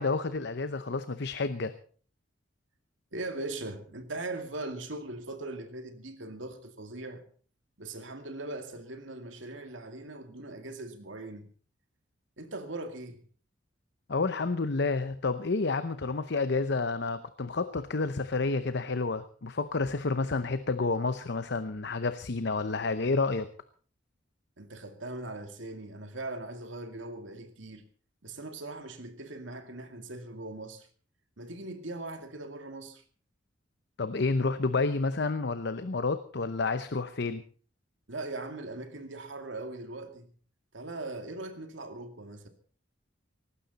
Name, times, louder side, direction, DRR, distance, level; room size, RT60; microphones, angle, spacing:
voice 1, 0.0-1.7 14.1-23.5 34.0-37.4, left 3 dB, 60° left, 0.8 m, -30 dB
voice 2, 3.1-7.2 7.8-11.5 12.4-13.2 24.6-27.8 28.2-30.9 31.4-33.0 38.1-40.3 40.7-42.5, right 2 dB, 75° right, 2.3 m, -40 dB
18.5 x 15.5 x 4.1 m
head